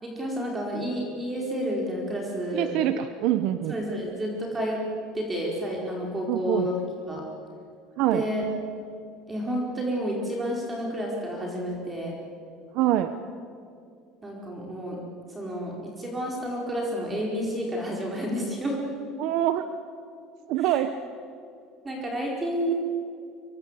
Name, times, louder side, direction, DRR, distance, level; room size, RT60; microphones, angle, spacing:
voice 1, 0.0-2.7 3.7-4.8 5.1-6.7 7.1-7.2 8.1-8.5 9.3-12.2 14.2-15.0 15.3-18.8 20.7-20.8 21.8-22.7, equal, 15° right, -1 dB, 4.8 m, -30 dB
voice 2, 2.5-3.7 6.3-6.7 8.0-8.2 12.7-13.2 19.2-19.7 20.5-20.9, right 12 dB, 65° right, 10 dB, 1.0 m, -25 dB
25.0 x 22.5 x 8.3 m, 2.4 s
cardioid pair, 135°, 0 cm